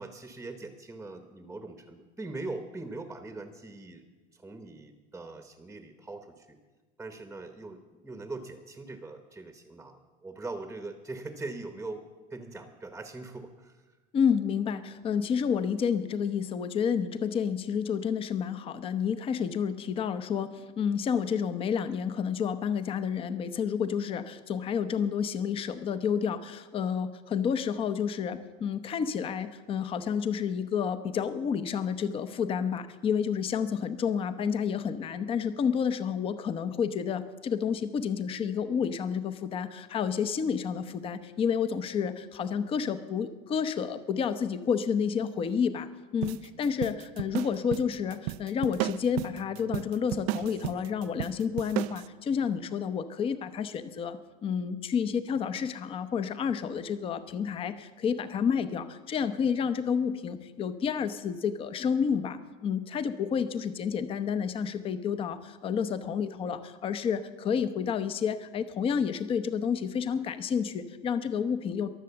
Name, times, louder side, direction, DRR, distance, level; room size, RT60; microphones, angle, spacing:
voice 1, 0.0-4.0 4.3-6.6 7.0-12.0 12.3-13.8, right 2 dB, 10° right, 8 dB, 0.9 m, -41 dB
voice 2, 14.1-71.9, left 7 dB, 30° left, 12 dB, 0.8 m, -30 dB
sound 1, 46.2-52.1, right 17 dB, 75° right, 0.5 m, -34 dB
22.0 x 7.6 x 6.9 m, 1.2 s
cardioid pair, 145°, 19 cm